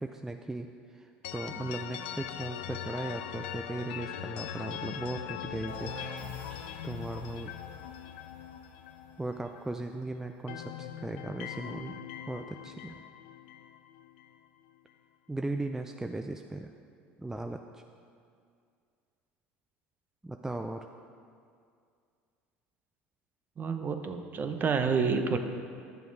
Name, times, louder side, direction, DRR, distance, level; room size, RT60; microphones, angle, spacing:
voice 1, 0.0-5.9 6.8-7.6 9.2-13.0 15.3-16.7 17.2-17.8 20.2-20.9, right 2 dB, 10° right, 5 dB, 0.4 m, -37 dB
sound 1, 1.2-10.0 10.3-14.4, left 10 dB, 80° left, 0.4 m, -41 dB
sound 2, 5.7-11.3, equal, 85° right, 1.8 m, -49 dB
voice 2, 23.6-25.4, right 5 dB, 35° right, 7 dB, 0.9 m, -29 dB
10.5 x 6.9 x 4.8 m, 2.3 s
hypercardioid pair, 80°, 5 cm